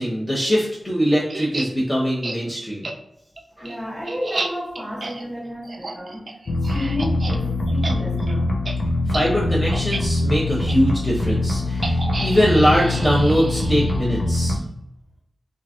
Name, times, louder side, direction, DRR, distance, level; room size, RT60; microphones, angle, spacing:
voice 1, 0.0-2.8 3.6-3.7 9.1-14.6, equal, 20° left, 0.8 m, -21 dB
sound 1, 1.3-1.7 2.2-2.4 2.8-2.9 3.4-7.4 7.7-8.3 8.6-8.7 9.1-9.3 9.7-10.0 10.7-10.8 11.8-14.2, right 2 dB, 55° right, 0.3 m, -32 dB
voice 2, 3.6-8.5, left 1 dB, ahead, 1.1 m, -31 dB
sound 2, 6.5-14.6, left 2 dB, 65° left, 0.3 m, -23 dB
3.0 x 2.4 x 2.4 m
wide cardioid pair, 65°, 0 cm